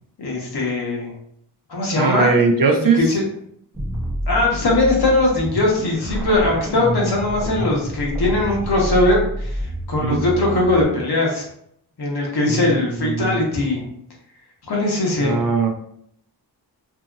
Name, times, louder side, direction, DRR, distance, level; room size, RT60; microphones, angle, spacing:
voice 1, 0.2-1.1 1.7-2.4 2.9-3.2 4.3-9.6 9.9-11.4 12.0-13.8 14.7-15.5, left 2 dB, 65° left, -2 dB, 1.0 m, -20 dB
voice 2, 2.0-3.0 10.0-10.2 12.5-13.4 15.2-15.7, right 4 dB, 55° right, 4 dB, 0.5 m, -20 dB
sound 1, 3.7-10.8, equal, 5° right, 0.7 m, -28 dB
2.8 x 2.7 x 2.4 m, 0.68 s
wide cardioid pair, 90°, 42 cm